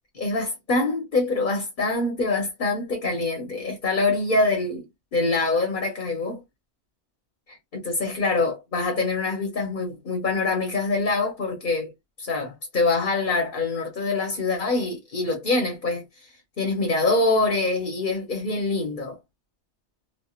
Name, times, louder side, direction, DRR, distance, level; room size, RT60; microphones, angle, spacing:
voice 1, 0.1-4.9 5.1-6.4 7.5-11.9 12.2-16.0 16.6-19.2, left 3 dB, 45° left, 1.0 m, -25 dB
3.2 x 2.4 x 2.3 m
omnidirectional pair, 1.2 m